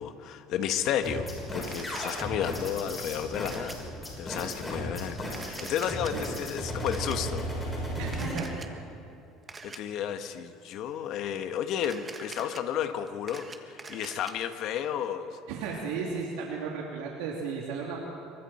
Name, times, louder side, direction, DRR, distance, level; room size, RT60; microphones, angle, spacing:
voice 1, 0.0-3.8 4.2-7.4 9.6-15.4, left 9 dB, 55° left, 7 dB, 1.5 m, -32 dB
sound 1, 1.0-8.3, equal, 10° left, 6.4 m, -35 dB
Camera, 1.7-2.2 3.4-3.7 5.3-6.1 6.9-7.2 8.1-8.7 9.5-9.8 11.8-12.6 13.1-14.3, right 4 dB, 20° right, 1.4 m, -44 dB
voice 2, 8.0-8.7 15.5-18.0, right 5 dB, 90° right, -3 dB, 3.0 m, -34 dB
26.0 x 24.0 x 4.4 m, 2.6 s
cardioid pair, 140°, 0 cm